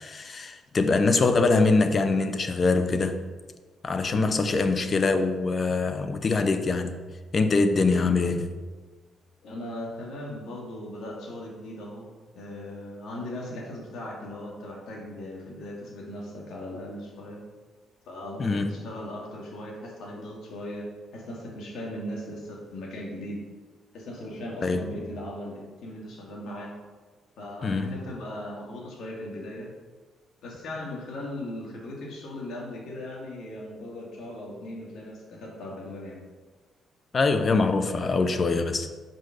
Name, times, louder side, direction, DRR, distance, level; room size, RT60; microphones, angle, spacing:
voice 1, 0.0-3.2 3.8-7.0 7.3-8.5 18.4-18.7 24.6-24.8 27.6-28.0 37.1-38.9, left 3 dB, 40° left, 8 dB, 0.7 m, -23 dB
voice 2, 4.1-4.6 9.4-12.1 12.3-17.4 18.1-20.9 21.1-23.4 23.9-26.7 27.4-29.7 30.4-36.2, left 1 dB, 75° left, -2 dB, 2.2 m, -38 dB
5.4 x 5.3 x 6.5 m, 1.4 s
cardioid pair, 90°, 0 cm